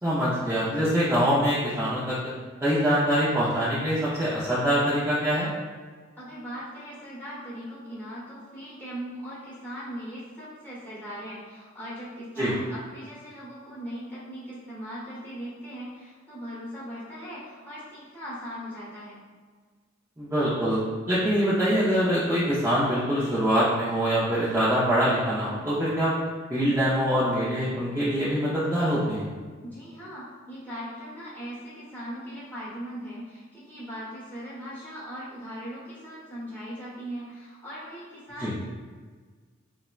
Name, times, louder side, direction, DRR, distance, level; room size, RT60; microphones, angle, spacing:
voice 1, 0.0-2.2 2.6-5.5 12.4-12.5 20.2-20.8 21.1-26.2 26.5-29.3 38.4-38.5, equal, 15° right, -11 dB, 0.5 m, -24 dB
voice 2, 6.2-19.2 29.6-38.6, equal, 10° left, -9 dB, 1.0 m, -39 dB
4.1 x 2.1 x 2.3 m, 1.5 s
head